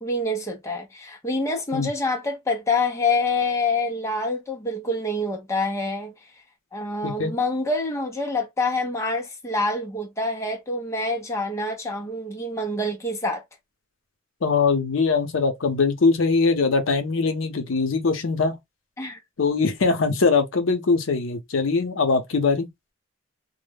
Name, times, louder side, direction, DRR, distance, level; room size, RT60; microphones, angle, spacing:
voice 1, 0.0-6.1 6.7-13.4 19.0-19.2, left 2 dB, 15° left, 0.5 m, -26 dB
voice 2, 14.4-18.6 19.4-22.7, left 4 dB, 70° left, 0.6 m, -22 dB
2.1 x 2.0 x 3.2 m
head